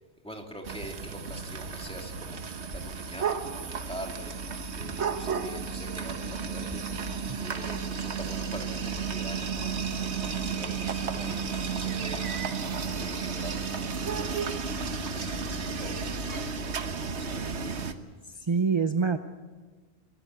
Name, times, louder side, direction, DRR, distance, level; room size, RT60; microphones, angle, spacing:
voice 1, 0.2-2.4 2.7-4.3 4.7-6.9 7.4-10.2 10.5-12.4 13.0-14.6 15.1-17.9, equal, 5° left, 2 dB, 2.6 m, -44 dB
sound 1, 0.6-17.9, right 5 dB, 85° right, 1.5 m, -33 dB
sound 2, 9.9-17.9, right 6 dB, 70° right, 1.2 m, -45 dB
voice 2, 18.2-19.2, right 5 dB, 30° right, 9 dB, 0.7 m, -27 dB
26.5 x 13.5 x 8.3 m, 1.4 s
omnidirectional pair, 1.1 m